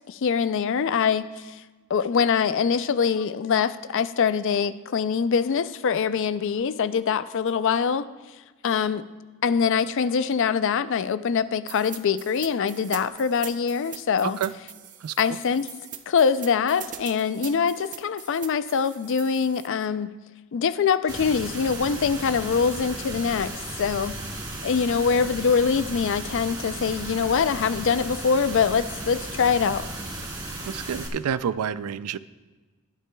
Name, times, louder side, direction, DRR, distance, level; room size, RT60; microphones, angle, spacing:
voice 1, 0.1-1.6 1.9-8.1 8.6-9.1 9.4-14.4 15.2-15.7 16.1-20.1 20.5-24.2 24.6-29.9, left 6 dB, 60° left, 14 dB, 0.4 m, -24 dB
sound 1, 11.7-19.7, right 9 dB, 35° right, 0.6 m, -42 dB
voice 2, 15.0-15.4 30.7-32.2, right 8 dB, 85° right, 16 dB, 0.4 m, -29 dB
sound 2, 21.1-31.1, right 2 dB, 20° right, 1.6 m, -35 dB
20.5 x 9.8 x 2.3 m, 1.3 s
head